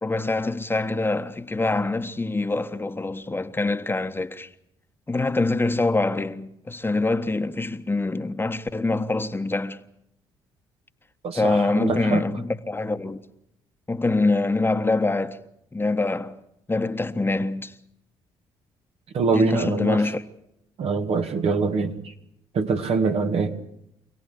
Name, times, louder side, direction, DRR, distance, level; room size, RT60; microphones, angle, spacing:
voice 1, 0.0-4.5 5.1-9.8 11.3-13.2 13.9-15.4 15.7-16.4 16.7-17.7 19.3-20.2, left 2 dB, 20° left, 1.4 m, -24 dB
voice 2, 11.2-12.2 19.1-20.0 20.8-22.1 22.5-23.6, right 4 dB, 60° right, 2.2 m, -24 dB
26.5 x 17.5 x 8.5 m
supercardioid pair, 60°, 11 cm